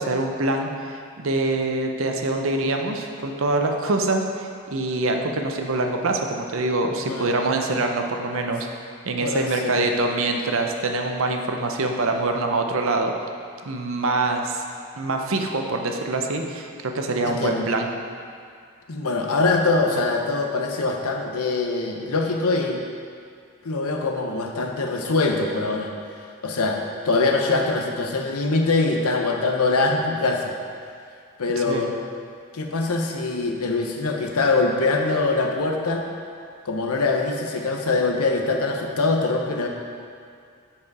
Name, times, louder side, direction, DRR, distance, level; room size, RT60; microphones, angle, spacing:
voice 1, 0.0-8.7 9.0-13.1 13.7-14.6 15.0-17.9 31.7-31.8, right 2 dB, 65° right, 3 dB, 0.6 m, -24 dB
voice 2, 9.2-9.8 17.3-17.7 18.9-22.8 23.6-25.9 26.4-26.8 27.0-30.5 31.4-31.9 32.5-36.0 36.7-39.7, left 3 dB, 85° left, 2 dB, 0.8 m, -23 dB
7.3 x 5.0 x 4.7 m, 2.2 s
head